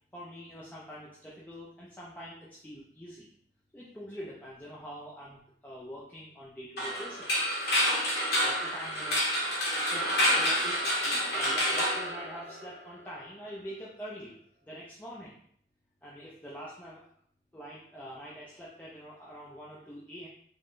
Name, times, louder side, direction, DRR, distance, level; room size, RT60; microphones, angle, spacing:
voice 1, 0.1-3.3 3.7-7.3 8.4-9.3 9.9-14.4 14.6-15.4 16.0-17.1 17.5-20.3, equal, 10° left, -7 dB, 0.4 m, -45 dB
sound 1, 6.8-12.8, equal, 60° left, 0.8 m, -28 dB
3.4 x 2.2 x 2.4 m, 0.62 s
head